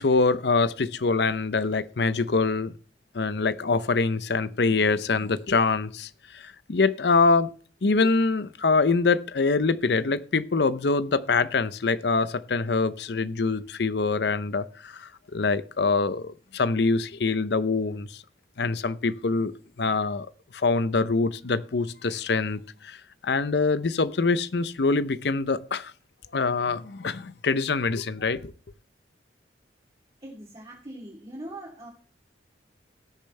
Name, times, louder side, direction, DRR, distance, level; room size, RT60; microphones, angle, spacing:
voice 1, 0.0-2.7 3.1-7.5 7.8-18.2 18.6-20.3 20.5-23.0 23.2-25.9 26.3-28.5, left 4 dB, 65° left, 0.6 m, -24 dB
voice 2, 30.2-31.9, right 1 dB, 30° right, 2.9 m, -41 dB
19.0 x 6.9 x 3.3 m
head